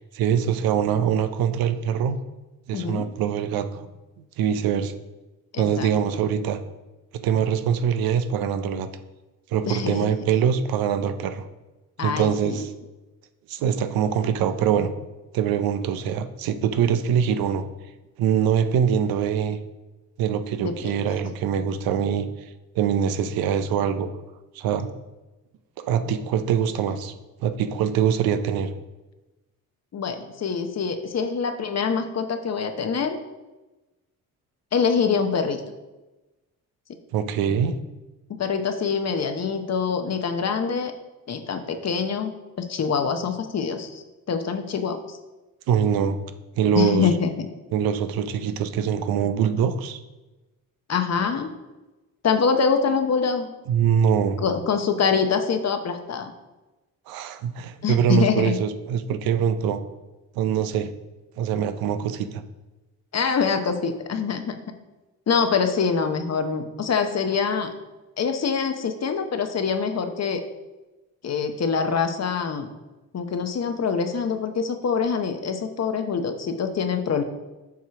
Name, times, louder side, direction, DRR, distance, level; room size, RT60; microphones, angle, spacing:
voice 1, 0.0-2.2 2.7-3.8 4.4-4.9 5.6-6.6 7.2-8.9 9.5-11.4 12.0-12.7 13.5-14.9 15.3-17.6 18.2-19.6 20.2-22.3 22.7-24.1 24.5-24.9 25.8-27.1 27.4-28.7 37.1-37.7 45.7-46.2 46.6-47.1 47.7-50.0 53.7-54.5 57.1-59.8 60.4-60.9 61.4-62.4, right 8 dB, 90° right, 10 dB, 0.6 m, -23 dB
voice 2, 2.7-3.1 5.5-5.9 9.7-10.1 12.0-12.6 20.6-20.7 21.2-21.3 29.9-33.2 34.7-35.6 38.3-40.9 41.3-45.2 46.7-47.3 50.9-51.5 52.2-53.5 54.4-56.3 57.8-58.6 63.1-64.6 65.3-67.7 68.2-70.4 71.2-72.7 73.1-77.2, left 6 dB, 45° left, 7 dB, 0.9 m, -25 dB
7.2 x 3.0 x 5.8 m, 1.1 s
cardioid pair, 65°, 35 cm